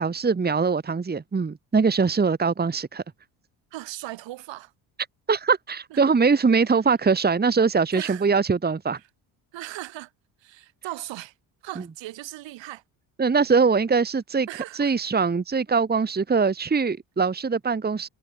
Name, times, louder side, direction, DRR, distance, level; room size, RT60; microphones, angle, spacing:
voice 1, 0.0-3.0 5.3-9.0 13.2-14.5 14.8-18.1, right 5 dB, 20° right, 1.7 m, -22 dB
voice 2, 3.7-4.7 5.9-6.0 7.9-8.2 9.5-10.1 10.4-11.3 11.6-12.8 14.5-14.9, right 16 dB, 75° right, 6.6 m, -37 dB
cardioid pair, 90°, 45 cm